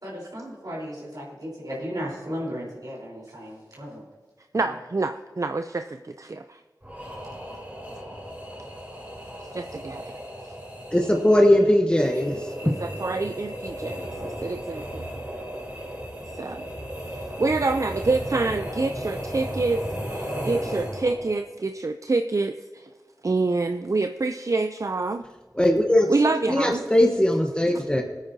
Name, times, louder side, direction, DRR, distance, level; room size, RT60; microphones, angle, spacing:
voice 1, 0.0-4.0 4.5-4.7 7.1-7.2, equal, 65° right, -5 dB, 3.8 m, -35 dB
voice 2, 4.5-6.6 9.5-10.1 12.6-15.1 16.4-16.7 17.4-19.8 20.1-22.9 23.2-25.2 26.1-26.8 27.7-27.8, right 3 dB, 50° right, 8 dB, 0.4 m, -27 dB
sound 1, 6.8-21.4, equal, 25° right, 3.3 m, -35 dB
voice 3, 10.9-12.4 12.6-12.8 25.5-26.1 26.5-28.0, left 1 dB, 15° left, 2 dB, 1.0 m, -19 dB
18.0 x 9.0 x 2.7 m, 1.4 s
wide cardioid pair, 45°, 7 cm